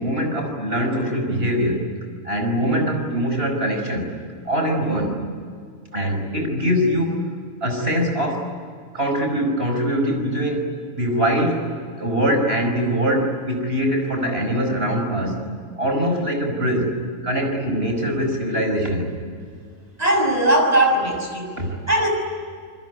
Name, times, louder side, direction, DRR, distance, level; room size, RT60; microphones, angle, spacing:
voice 1, 0.0-1.8 2.2-4.1 4.5-5.2 5.9-7.2 7.6-8.5 8.9-10.7 11.0-11.6 12.0-15.4 15.8-16.9 17.2-19.1 21.6-21.8, equal, 45° right, 4 dB, 5.7 m, -22 dB
voice 2, 20.0-21.5 21.9-22.1, right 1 dB, 30° right, 2 dB, 6.7 m, -19 dB
28.5 x 21.0 x 9.5 m, 2.1 s
omnidirectional pair, 1.4 m